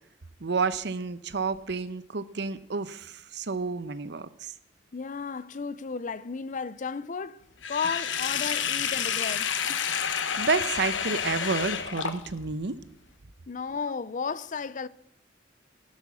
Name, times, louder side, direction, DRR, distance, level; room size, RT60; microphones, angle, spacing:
voice 1, 0.4-4.5 10.4-12.8, right 4 dB, 60° right, 0.8 m, -30 dB
voice 2, 4.9-9.8 13.5-14.9, left 5 dB, 45° left, 0.5 m, -34 dB
Sink (filling or washing), 7.6-12.5, left 7 dB, 75° left, 1.1 m, -29 dB
15.0 x 11.5 x 6.2 m
head